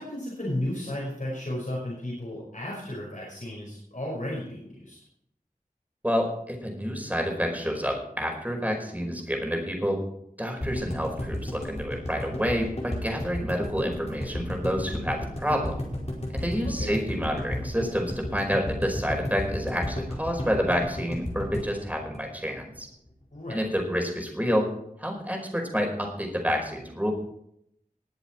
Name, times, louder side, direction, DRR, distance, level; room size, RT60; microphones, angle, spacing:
voice 1, 0.0-5.0 16.6-17.0 23.3-23.6, left 1 dB, 60° left, -5 dB, 5.4 m, -34 dB
voice 2, 6.0-10.0 10.4-15.8 16.3-22.9 23.5-24.7 25.0-27.1, equal, 10° right, 2 dB, 4.9 m, -28 dB
sound 1, 10.6-22.8 23.1-23.2 23.4-23.5, left 1 dB, 45° left, 5.0 m, -33 dB
21.0 x 8.0 x 4.5 m, 0.73 s
wide cardioid pair, 40°, 15 cm